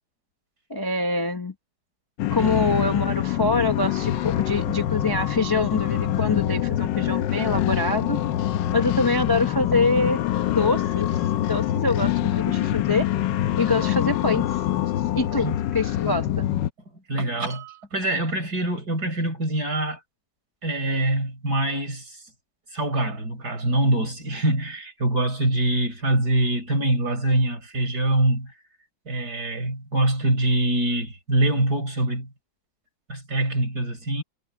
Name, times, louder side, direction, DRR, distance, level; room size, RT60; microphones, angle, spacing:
voice 1, 0.7-1.5 2.3-8.2 8.7-10.2 10.5-11.1 11.5-13.1 13.6-14.6 15.1-16.5, left 3 dB, 30° left, 0.4 m, -25 dB
sound 1, 2.2-16.7, left 12 dB, 80° left, 1.4 m, -25 dB
voice 2, 17.1-20.0 20.6-22.2 22.7-28.5 29.1-32.3 33.1-34.2, right 1 dB, 60° right, 5.9 m, -24 dB
omnidirectional pair, 2.0 m